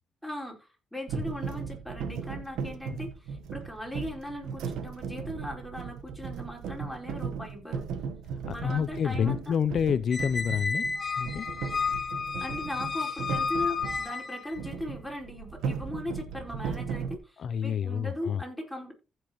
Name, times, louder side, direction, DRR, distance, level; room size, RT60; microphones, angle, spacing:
voice 1, 0.2-7.9 8.5-9.5 12.4-18.9, left 1 dB, ahead, 4.5 m, -39 dB
sound 1, 1.1-14.1 14.5-17.2, right 6 dB, 85° right, 1.2 m, -37 dB
voice 2, 8.5-10.9 11.2-11.5 17.4-18.4, left 7 dB, 55° left, 0.5 m, -28 dB
Squeak, 10.1-14.6, left 5 dB, 30° left, 1.0 m, -32 dB
15.0 x 6.1 x 3.0 m
cardioid pair, 90°, 0 cm